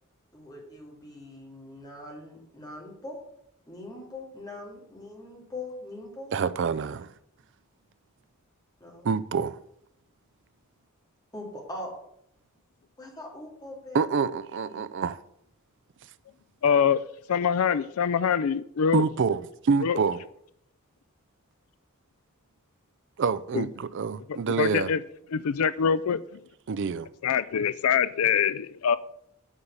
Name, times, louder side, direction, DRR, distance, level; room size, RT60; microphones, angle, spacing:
voice 1, 0.3-3.2 3.7-6.3 8.8-9.1 11.3-11.9 13.0-14.0 14.7-14.8, left 1 dB, 20° left, 3.1 m, -41 dB
voice 2, 6.3-7.1 9.0-9.6 13.9-15.2 18.9-20.2 23.2-24.9 26.7-27.1, right 5 dB, 55° right, 0.4 m, -27 dB
voice 3, 16.6-17.0 17.3-19.0 19.8-20.0 23.5-23.6 24.6-25.0 25.3-26.2 27.2-29.0, left 7 dB, 75° left, 0.4 m, -24 dB
10.0 x 5.4 x 8.0 m
head